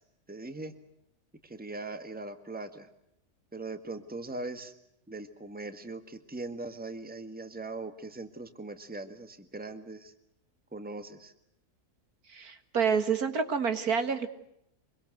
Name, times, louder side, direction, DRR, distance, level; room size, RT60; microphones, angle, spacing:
voice 1, 0.3-0.7 1.5-2.9 3.5-4.7 5.1-10.1 10.7-11.3, right 2 dB, 5° right, 9 dB, 1.6 m, -40 dB
voice 2, 12.3-14.3, right 6 dB, 70° right, 9 dB, 2.2 m, -28 dB
25.5 x 23.0 x 7.9 m, 0.77 s
omnidirectional pair, 1.7 m